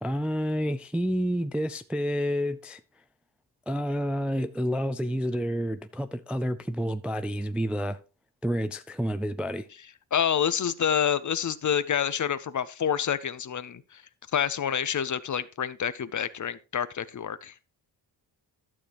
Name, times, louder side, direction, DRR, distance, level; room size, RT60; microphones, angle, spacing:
voice 1, 0.0-2.8 3.7-8.0 8.4-9.7, equal, 5° right, 0.3 m, -29 dB
voice 2, 10.1-14.0 14.3-17.5, left 8 dB, 40° left, 0.6 m, -28 dB
12.0 x 6.7 x 2.9 m
cardioid pair, 80°, 47 cm